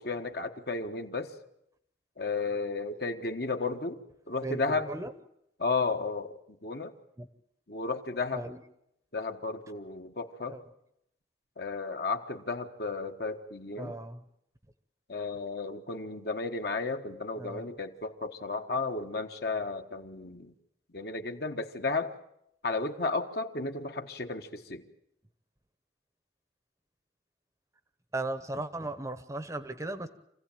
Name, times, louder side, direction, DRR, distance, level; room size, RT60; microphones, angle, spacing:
voice 1, 0.0-1.3 2.2-4.0 4.3-4.9 5.6-6.3 6.6-6.9 7.7-8.5 9.1-10.6 11.6-13.9 15.1-20.5 20.9-22.2 22.6-24.8, left 3 dB, 55° left, 6 dB, 1.4 m, -33 dB
voice 2, 4.4-5.1 7.2-7.3 8.3-8.6 10.5-10.6 13.8-14.2 17.4-17.7 28.1-30.1, right 2 dB, 15° right, 12 dB, 0.9 m, -37 dB
26.0 x 16.0 x 9.0 m, 0.78 s
head